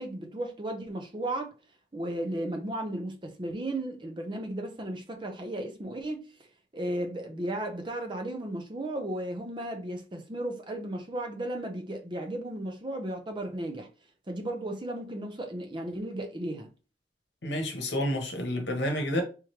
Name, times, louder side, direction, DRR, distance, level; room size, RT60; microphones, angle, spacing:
voice 1, 0.0-1.5 1.9-6.3 6.7-13.9 14.3-16.7, right 1 dB, 25° right, 0.6 m, -35 dB
voice 2, 17.4-19.2, left 1 dB, 75° left, 1.1 m, -29 dB
3.5 x 3.1 x 3.1 m
head